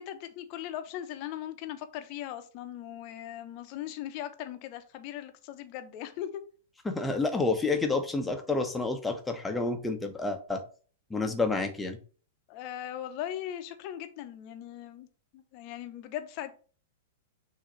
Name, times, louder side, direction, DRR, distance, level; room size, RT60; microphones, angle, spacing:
voice 1, 0.0-6.4 12.5-15.1 15.3-16.5, left 11 dB, 40° left, 8 dB, 0.9 m, -39 dB
voice 2, 6.8-10.6 11.1-12.0, left 3 dB, 10° left, 5 dB, 1.0 m, -29 dB
6.2 x 2.9 x 5.3 m, 0.40 s
figure-of-eight pair, 100°, 0 cm